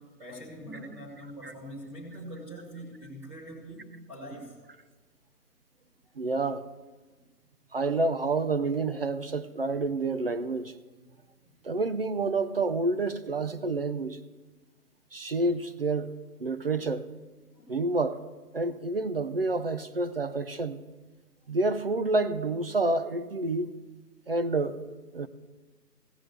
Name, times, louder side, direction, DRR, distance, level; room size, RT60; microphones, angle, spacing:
voice 1, 0.0-4.5 17.5-17.8, equal, 10° right, 1.9 m, -43 dB
voice 2, 6.2-6.6 7.7-10.7 11.6-14.2 15.1-16.1 16.4-17.1 17.7-18.2 18.5-20.8 21.5-23.7 24.3-24.8 25.1-25.3, right 3 dB, 40° right, 0.4 m, -28 dB
15.5 x 5.9 x 7.8 m
hypercardioid pair, 150°, 48 cm